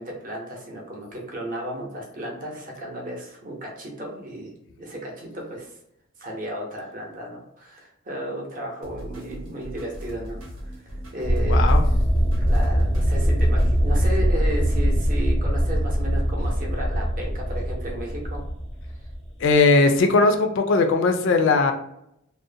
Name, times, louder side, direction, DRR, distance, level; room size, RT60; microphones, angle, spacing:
voice 1, 0.0-5.7 6.2-10.4 10.6-10.7 11.1-11.7 12.4-18.4, right 1 dB, 40° right, 0 dB, 0.7 m, -34 dB
sound 1, 8.8-13.9, equal, 75° right, 0.8 m, -39 dB
sound 2, 11.2-19.5, equal, ahead, 0.6 m, -22 dB
voice 2, 11.5-11.8 19.4-21.7, left 3 dB, 60° left, 6 dB, 0.3 m, -19 dB
2.6 x 2.0 x 2.6 m, 0.78 s
head